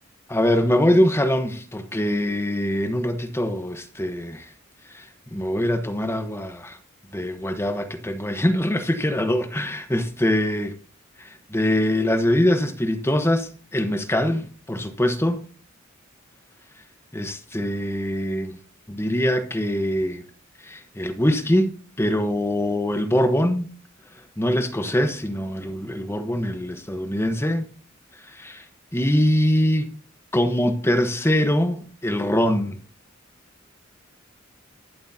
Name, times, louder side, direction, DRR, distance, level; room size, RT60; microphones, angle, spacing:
voice 1, 0.3-4.5 4.9-6.8 7.1-10.8 11.2-15.4 17.1-18.6 18.9-20.2 20.6-21.7 22.0-23.7 24.4-27.7 28.2-28.7 28.9-29.9 30.3-32.8, left 1 dB, 10° left, 1.1 m, -23 dB
23.0 x 7.8 x 2.8 m
head